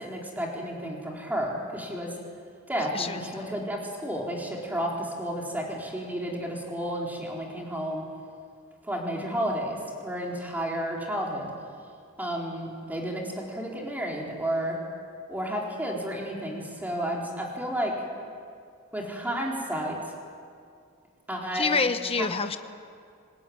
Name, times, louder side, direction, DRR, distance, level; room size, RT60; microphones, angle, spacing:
voice 1, 0.0-2.1 2.7-8.0 8.8-11.5 12.2-14.8 15.3-17.9 18.9-20.0 21.3-21.8 22.2-22.3, equal, 10° right, -2 dB, 4.1 m, -31 dB
voice 2, 2.9-3.5 21.5-22.6, left 4 dB, 25° left, 9 dB, 1.1 m, -27 dB
26.5 x 20.0 x 9.6 m, 2.3 s
head